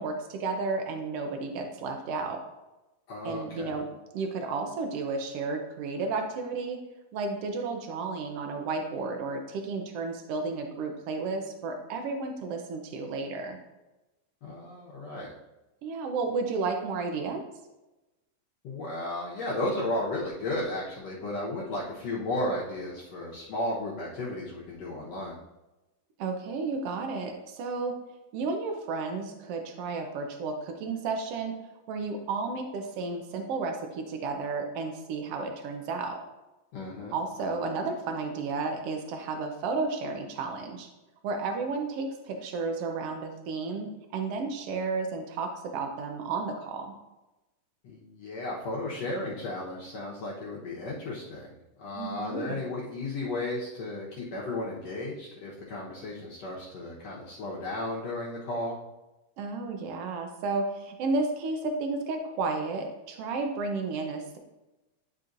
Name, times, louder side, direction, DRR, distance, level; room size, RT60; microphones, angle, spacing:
voice 1, 0.0-2.4 3.2-3.9 4.1-6.8 7.1-13.6 15.8-17.4 26.2-27.9 28.3-31.5 31.9-36.2 37.1-40.9 41.2-46.9 51.9-52.5 59.4-64.4, right 4 dB, 80° right, 4 dB, 1.3 m, -32 dB
voice 2, 3.1-3.7 14.4-15.3 18.6-25.4 36.7-37.1 47.8-51.5 51.8-58.8, left 1 dB, 60° left, -6 dB, 2.0 m, -34 dB
9.4 x 5.5 x 2.6 m, 1.0 s
omnidirectional pair, 3.7 m